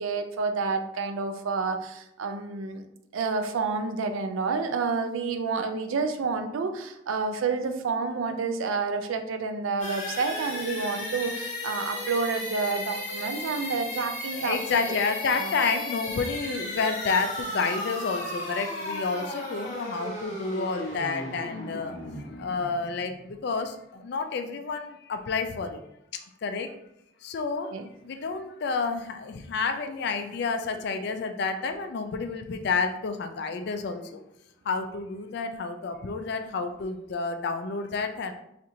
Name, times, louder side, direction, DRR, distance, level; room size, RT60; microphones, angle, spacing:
voice 1, 0.0-2.8 3.1-14.6 15.4-15.5 27.7-27.9, right 4 dB, 85° right, 7 dB, 0.4 m, -29 dB
sound 1, 9.8-23.5, left 1 dB, 40° left, 0.8 m, -35 dB
voice 2, 14.4-25.8 26.4-26.7 27.2-27.7 28.0-34.2 34.6-38.3, left 4 dB, 55° left, 7 dB, 0.3 m, -30 dB
4.2 x 2.5 x 2.6 m, 0.80 s
head